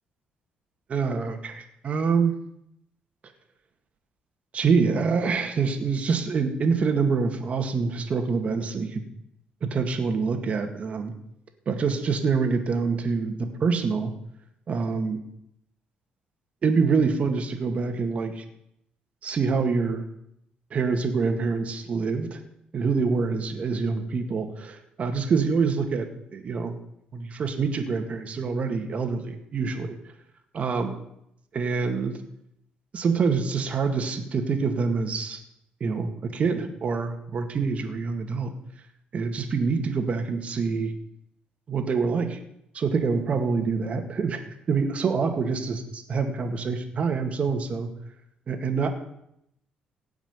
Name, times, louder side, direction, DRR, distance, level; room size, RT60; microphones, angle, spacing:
voice 1, 0.9-2.3 4.5-9.0 9.6-11.1 11.7-14.1 14.7-15.2 16.6-18.4 19.2-20.0 20.7-22.4 22.7-26.1 26.3-26.8 27.1-30.0 30.5-30.9 31.5-32.2 32.9-35.4 35.8-38.5 39.1-40.9 41.7-42.4 42.7-44.4 44.7-47.9 48.5-48.9, right 5 dB, 45° right, 5 dB, 2.1 m, -26 dB
16.5 x 6.1 x 9.6 m, 0.77 s
cardioid pair, 110°, 3 cm